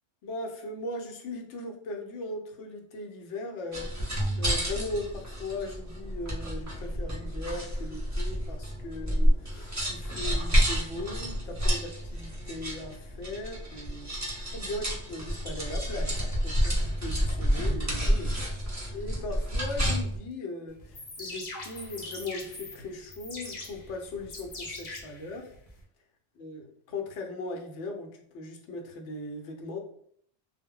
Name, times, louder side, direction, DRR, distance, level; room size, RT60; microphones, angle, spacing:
voice 1, 0.2-3.9 4.4-14.1 14.5-16.2 16.4-18.3 18.6-25.5 26.4-29.8, left 2 dB, 80° left, 3 dB, 0.9 m, -38 dB
sound 1, 3.7-20.2, equal, 20° right, 0.5 m, -29 dB
sound 2, 20.8-25.8, left 2 dB, 45° left, 0.7 m, -42 dB
2.1 x 2.1 x 3.6 m, 0.63 s
omnidirectional pair, 1.2 m